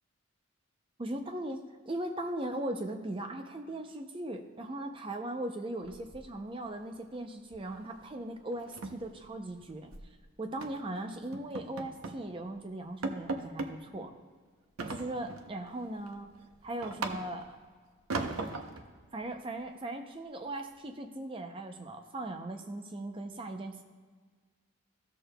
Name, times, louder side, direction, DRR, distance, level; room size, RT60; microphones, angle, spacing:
voice 1, 1.0-9.9 10.4-14.1 14.9-16.3 16.6-17.6 19.1-23.8, right 1 dB, 25° right, 5 dB, 0.5 m, -39 dB
sound 1, 5.8-6.7 6.9-7.2 7.5-7.7 8.0-8.1 8.5-10.1 10.6-10.9 11.3-12.3 12.6-12.7 13.0-13.8 14.8-15.5 15.9-17.6 18.1-18.9, right 3 dB, 85° right, 0.7 m, -38 dB
15.0 x 6.6 x 2.2 m, 1.5 s
head